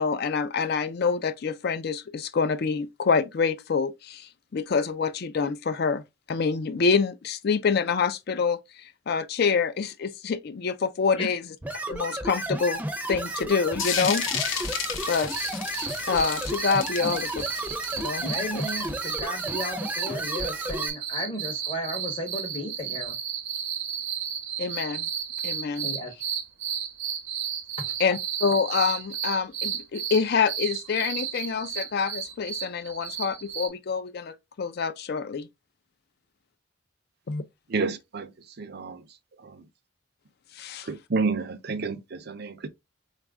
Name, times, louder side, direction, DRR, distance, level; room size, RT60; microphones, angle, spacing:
voice 1, 0.0-6.0 6.3-11.4 11.9-12.8 13.1-14.8 15.1-15.3 16.1-17.3 18.0-18.2 18.5-18.6 24.6-25.1 25.4-25.9 28.0-35.5 37.3-37.4 40.6-40.9, left 5 dB, 50° left, 0.4 m, -26 dB
sound 1, 11.6-20.9, right 1 dB, 10° right, 0.6 m, -32 dB
sound 2, 13.8-19.1, left 7 dB, 70° left, 0.8 m, -33 dB
sound 3, 15.3-33.7, right 8 dB, 70° right, 1.0 m, -33 dB
voice 2, 18.2-23.2 25.8-26.1 27.8-27.9, left 1 dB, 25° left, 0.7 m, -34 dB
voice 3, 37.7-38.3 38.6-39.0 39.4-39.6 40.8-42.7, right 4 dB, 50° right, 0.5 m, -30 dB
4.1 x 2.4 x 3.4 m
head